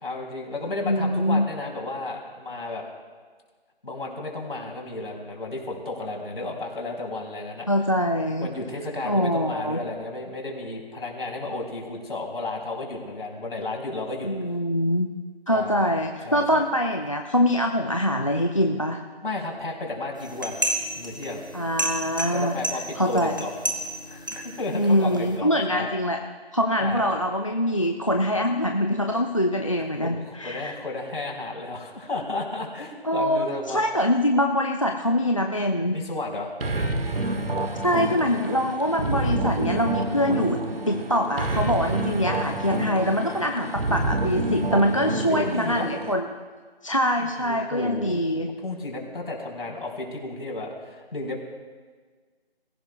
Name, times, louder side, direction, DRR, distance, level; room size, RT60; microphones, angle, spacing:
voice 1, 0.0-2.8 3.8-7.7 8.4-14.3 15.5-15.9 16.2-16.6 19.2-20.6 21.0-21.4 22.3-23.6 24.1-25.9 26.8-27.1 30.0-33.8 35.9-36.5 45.3-45.9 47.0-48.2 48.6-51.4, left 2 dB, 60° left, -1 dB, 4.1 m, -33 dB
voice 2, 0.7-1.4 7.7-8.5 9.1-9.8 14.2-15.1 15.5-19.0 21.5-22.6 23.0-23.4 24.7-26.2 26.5-30.8 33.0-36.0 37.8-46.3 46.8-48.5, equal, 30° left, 5 dB, 0.5 m, -24 dB
sound 1, 20.2-25.4, right 1 dB, 20° right, 0.8 m, -32 dB
sound 2, 36.6-46.1, right 2 dB, 65° right, 1.6 m, -28 dB
24.0 x 15.5 x 2.3 m, 1.5 s
figure-of-eight pair, 170°, 32 cm